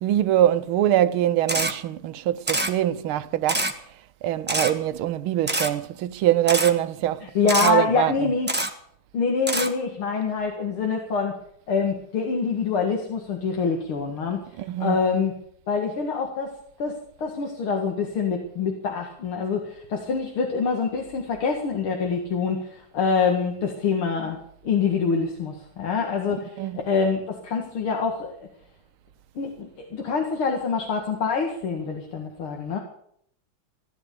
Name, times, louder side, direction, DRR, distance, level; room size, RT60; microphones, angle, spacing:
voice 1, 0.0-3.7 4.2-8.3 14.6-15.0 26.6-26.9, right 12 dB, 80° right, 1.6 m, -23 dB
Camera, 1.5-1.7 2.5-2.7 3.5-3.7 4.5-4.7 5.5-5.7 6.5-6.7 7.5-7.7 8.5-8.7 9.5-9.7, right 1 dB, 5° right, 0.9 m, -25 dB
voice 2, 7.2-8.5 9.1-11.3 11.7-14.4 14.8-15.3 15.7-24.4 24.6-26.6 26.9-28.4 29.4-32.8, left 5 dB, 80° left, 2.8 m, -25 dB
16.0 x 11.0 x 6.8 m
omnidirectional pair, 2.3 m